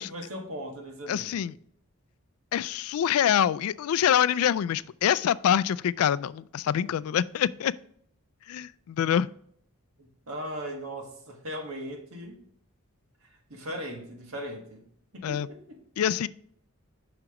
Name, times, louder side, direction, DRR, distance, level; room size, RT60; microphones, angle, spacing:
voice 1, 0.0-1.5 10.0-12.4 13.2-14.8 15.1-15.8, equal, 70° right, 3 dB, 1.6 m, -38 dB
voice 2, 1.1-1.5 2.5-7.7 8.5-9.3 15.2-15.5 16.0-16.3, left 9 dB, 75° left, 19 dB, 0.3 m, -25 dB
8.6 x 5.9 x 3.0 m, 0.66 s
head